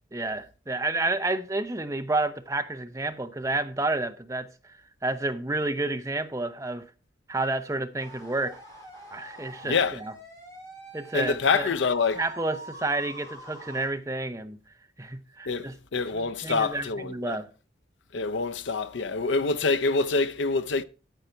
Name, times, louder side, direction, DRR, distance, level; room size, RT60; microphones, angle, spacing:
voice 1, 0.1-4.8 5.0-6.8 7.3-8.6 9.1-10.1 10.9-11.7 12.2-14.6 15.0-15.7 16.2-17.5, right 2 dB, 15° right, 0.7 m, -30 dB
sound 1, 8.0-13.9, right 1 dB, 20° left, 5.6 m, -45 dB
voice 2, 9.6-10.0 11.1-12.2 15.5-17.4 18.1-20.8, left 4 dB, 85° left, 0.6 m, -26 dB
9.2 x 8.2 x 4.4 m
head